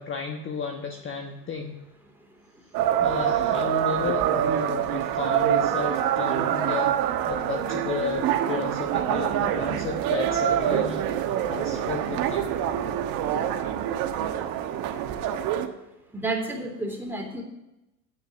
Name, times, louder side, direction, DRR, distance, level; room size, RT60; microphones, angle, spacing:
voice 1, 0.0-1.8 3.0-12.5, left 6 dB, 25° left, 3 dB, 1.2 m, -33 dB
sound 1, 2.7-15.7, right 10 dB, 45° right, 1.3 m, -25 dB
voice 2, 16.1-17.4, right 2 dB, 5° right, 0 dB, 3.4 m, -30 dB
9.5 x 9.1 x 7.7 m, 0.92 s
hypercardioid pair, 90°, 48 cm